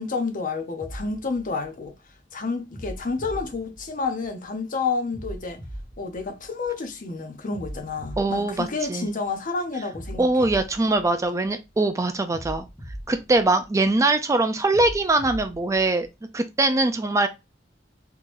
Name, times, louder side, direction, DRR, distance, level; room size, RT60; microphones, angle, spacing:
voice 1, 0.0-1.9 2.3-5.6 6.0-10.3, left 4 dB, 45° left, 0.7 m, -29 dB
sound 1, 0.8-2.1 2.7-4.4 5.1-6.9 7.5-9.3 9.9-11.7 12.3-14.0 14.7-16.1, equal, ahead, 0.8 m, -40 dB
voice 2, 8.2-9.1 10.2-12.7 13.1-16.1 16.3-17.3, right 2 dB, 15° right, 0.3 m, -22 dB
3.8 x 2.9 x 2.5 m
head